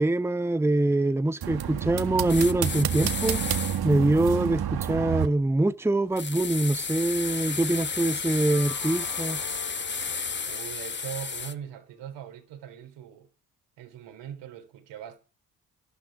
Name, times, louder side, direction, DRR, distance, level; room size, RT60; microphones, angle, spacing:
voice 1, 0.0-3.4 3.8-9.4, right 2 dB, 5° right, 1.0 m, -24 dB
sound 1, 1.4-5.3, right 9 dB, 60° right, 1.7 m, -29 dB
sound 2, 2.3-3.8 6.2-11.5, left 5 dB, 25° left, 1.2 m, -32 dB
sound 3, 8.3-11.5, left 7 dB, 50° left, 3.0 m, -46 dB
voice 2, 10.5-13.3 13.8-15.2, right 9 dB, 80° right, 4.0 m, -41 dB
13.0 x 12.5 x 5.0 m
hypercardioid pair, 55°, 43 cm